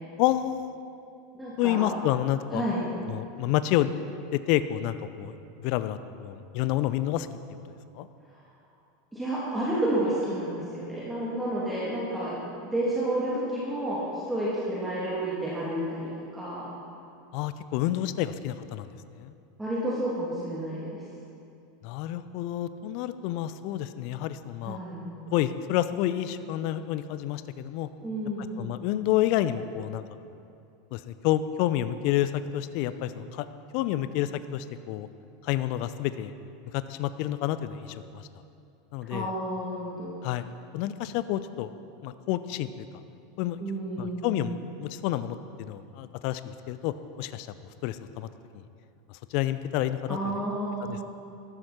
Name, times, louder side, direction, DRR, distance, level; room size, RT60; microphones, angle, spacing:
voice 1, 0.2-0.8 1.6-2.7 3.1-3.9 4.3-5.3 5.6-7.3 7.9-8.1 17.3-18.9 19.2-19.3 21.8-24.8 25.3-27.9 28.6-30.0 30.9-33.5 33.7-35.1 35.4-36.3 36.7-38.2 38.9-39.3 40.2-40.4 40.7-41.7 42.0-42.7 43.4-43.6 44.0-47.5 47.8-48.3 49.3-50.2 50.8-51.0, left 13 dB, 55° left, 13 dB, 0.6 m, -29 dB
voice 2, 1.3-1.9 2.5-2.8 9.1-16.7 19.6-21.0 24.6-25.1 28.0-28.9 39.1-40.2 43.6-44.5 50.1-51.0, right 1 dB, 10° right, -8 dB, 2.9 m, -31 dB
14.0 x 12.0 x 4.4 m, 2.5 s
figure-of-eight pair, 85°, 0 cm